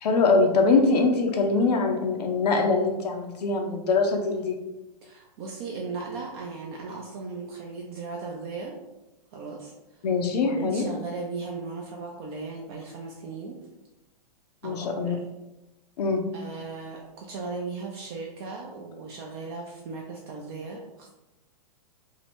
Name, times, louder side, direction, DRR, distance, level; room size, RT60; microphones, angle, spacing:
voice 1, 0.0-4.5 10.0-10.8 14.6-15.1 16.0-16.2, left 3 dB, 80° left, 3 dB, 0.6 m, -23 dB
voice 2, 5.0-8.8 9.3-9.7 10.4-13.6 14.6-15.2 16.3-21.1, right 4 dB, 40° right, -1 dB, 0.4 m, -37 dB
2.7 x 2.0 x 3.4 m, 1.0 s
hypercardioid pair, 135°, 20 cm